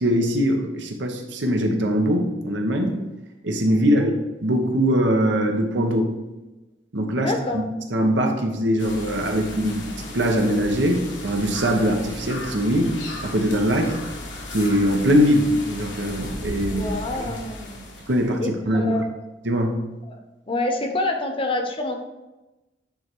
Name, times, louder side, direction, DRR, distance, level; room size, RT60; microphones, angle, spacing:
voice 1, 0.0-3.0 3.4-4.1 4.4-6.1 6.9-7.6 7.9-9.9 10.1-12.9 13.2-14.0 14.5-16.9 17.2-17.4 18.1-19.0 19.4-19.8, equal, 85° right, 3 dB, 1.1 m, -22 dB
voice 2, 7.2-7.6 16.7-17.8 18.4-19.1 20.0-20.2 20.5-22.0, left 2 dB, 30° left, 4 dB, 0.8 m, -27 dB
sound 1, 8.8-18.4, left 1 dB, 85° left, 1.4 m, -36 dB
9.3 x 3.4 x 4.6 m, 1.1 s
head